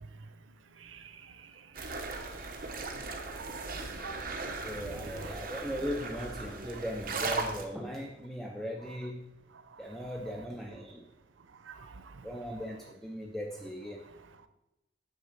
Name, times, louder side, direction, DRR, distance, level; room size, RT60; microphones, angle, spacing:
sound 1, 1.7-7.7, right 3 dB, 45° right, 0.9 m, -38 dB
voice 1, 3.2-3.6 4.0-4.3 4.8-5.3 8.8-8.9 10.0-10.1 11.7-12.0, right 4 dB, 90° right, 11 dB, 0.6 m, -46 dB
voice 2, 4.6-9.3 9.8-11.0 12.2-14.0, equal, ahead, 0 dB, 0.5 m, -38 dB
8.7 x 3.6 x 6.8 m, 0.94 s
head